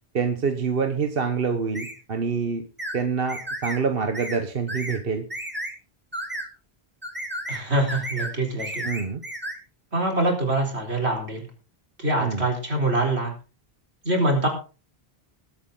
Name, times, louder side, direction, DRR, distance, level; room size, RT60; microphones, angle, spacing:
voice 1, 0.1-2.6 2.9-5.3 8.8-9.2 12.2-12.5, right 5 dB, 60° right, 7 dB, 1.3 m, -26 dB
sound 1, 1.7-2.0 2.8-3.0 3.3-3.8 4.1-4.4 4.7-5.0 5.3-5.7 6.1-6.5 7.0-7.6 7.9-8.3 8.6-9.6, right 1 dB, 10° right, 2.4 m, -32 dB
voice 2, 7.5-8.8 9.9-11.5 12.0-13.3 14.0-14.5, right 1 dB, 80° right, 2 dB, 4.4 m, -24 dB
21.5 x 8.5 x 3.8 m, 0.34 s
omnidirectional pair, 1.1 m